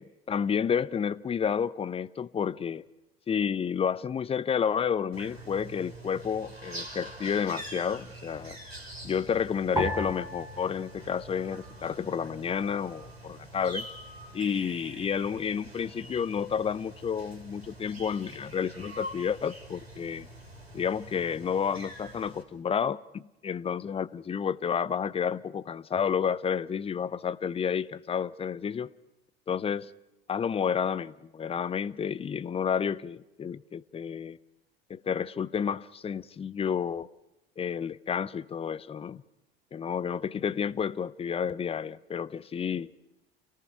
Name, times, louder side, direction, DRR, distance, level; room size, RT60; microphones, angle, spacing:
voice 1, 0.0-2.8 3.3-8.6 9.0-13.9 14.3-20.3 20.7-28.9 29.5-29.9 30.3-34.4 34.9-37.1 37.6-39.2 39.7-42.9, left 7 dB, 20° left, 0.7 m, -30 dB
sound 1, 5.1-22.4, right 1 dB, 85° right, 4.1 m, -45 dB
sound 2, 9.8-12.3 12.5-13.4 14.1-14.5, right 1 dB, 10° right, 5.3 m, -37 dB
29.0 x 19.0 x 6.0 m
figure-of-eight pair, 70°, 30 cm